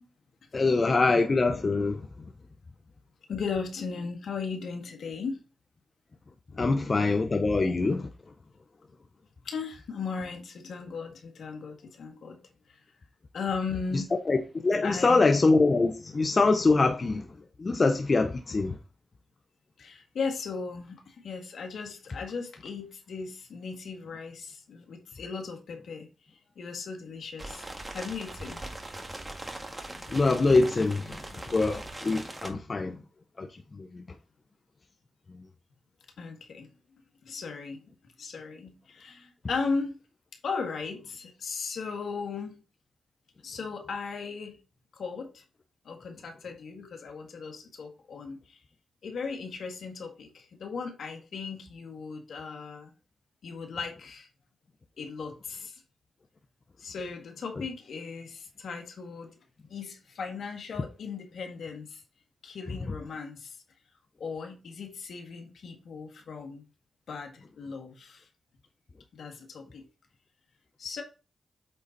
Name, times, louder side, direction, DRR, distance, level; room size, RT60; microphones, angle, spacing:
voice 1, 0.5-2.1 6.6-8.1 14.3-17.3 17.6-18.8 30.1-31.2 31.5-33.0 33.4-34.0, left 3 dB, 50° left, 0.9 m, -24 dB
voice 2, 3.3-5.4 6.6-7.1 9.4-12.4 12.7-12.8 13.3-14.1 14.8-15.4 19.8-26.1 26.6-27.6 27.9-28.6 36.2-36.7 37.2-37.9 38.2-40.0 40.4-42.6 43.4-44.6 44.9-45.4 45.9-48.6 49.0-52.9 53.4-54.3 55.0-55.8 56.8-59.3 59.7-62.0 62.4-63.5 64.2-66.7 67.1-68.3 69.1-69.8 70.8-71.0, left 5 dB, 80° left, 1.8 m, -37 dB
sound 1, 27.4-32.5, right 1 dB, 20° right, 2.0 m, -41 dB
8.8 x 3.9 x 4.1 m
supercardioid pair, 40°, 0 cm